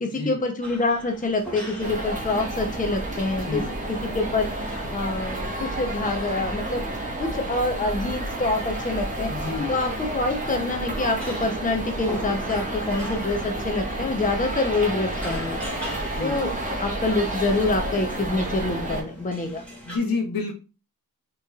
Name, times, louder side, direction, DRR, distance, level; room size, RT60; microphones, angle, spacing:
voice 1, 0.0-3.6 3.9-4.5 4.9-6.8 7.2-9.3 9.7-15.6 16.2-16.5 16.8-19.7, left 2 dB, 25° left, 5 dB, 0.6 m, -26 dB
sound 1, 0.6-20.0, equal, 5° left, 1.8 m, -42 dB
sound 2, 1.8-19.0, right 1 dB, 20° right, 1.0 m, -30 dB
voice 2, 3.4-3.7 9.3-9.7 15.9-16.6 19.9-20.6, left 4 dB, 80° left, 2 dB, 1.1 m, -29 dB
5.6 x 3.0 x 2.3 m, 0.30 s
wide cardioid pair, 100°, 35 cm